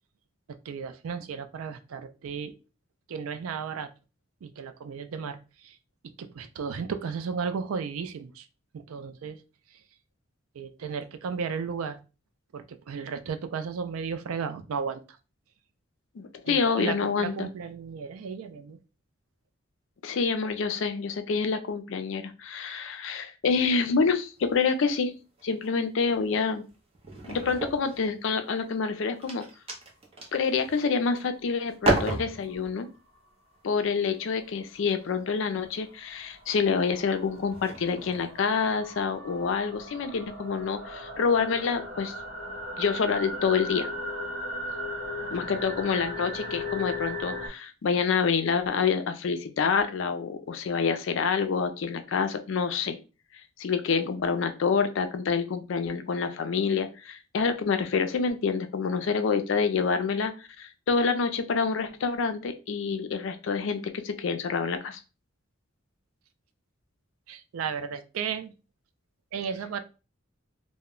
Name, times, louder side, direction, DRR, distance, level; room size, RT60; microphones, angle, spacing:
voice 1, 0.5-2.6 3.1-3.9 4.4-5.8 6.2-8.5 8.7-9.4 9.7-9.8 10.5-12.0 12.5-15.0 16.5-18.8 45.2-45.4 58.9-59.1 67.3-68.5 69.3-69.8, right 6 dB, 85° right, 0.4 m, -34 dB
voice 2, 16.2-17.5 20.0-25.1 25.4-26.6 27.2-29.4 30.3-32.9 33.6-42.1 42.8-43.9 45.3-53.0 53.6-65.0, left 5 dB, 65° left, 0.4 m, -27 dB
sound 1, 24.2-24.9 25.4-25.7 26.1-28.5 29.0-31.3 31.7-32.8 33.7-34.0 35.1-35.3 36.1-36.4 36.9-37.0 37.4-38.4, right 2 dB, 30° right, 0.5 m, -33 dB
sound 2, 34.8-47.5, left 1 dB, 55° right, 0.9 m, -37 dB
2.1 x 2.1 x 3.6 m
head